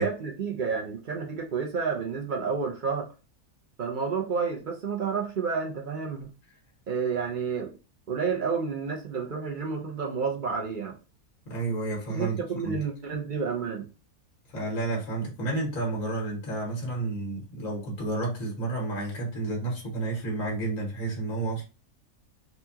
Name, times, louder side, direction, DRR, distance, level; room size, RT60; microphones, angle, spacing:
voice 1, 0.0-3.1 3.8-6.3 6.9-7.7 8.1-11.0 12.1-13.9, right 5 dB, 50° right, 0.6 m, -30 dB
voice 2, 11.5-12.4 12.6-12.8 14.5-21.6, right 2 dB, 60° left, 1.8 m, -31 dB
4.1 x 2.3 x 2.8 m
omnidirectional pair, 1.6 m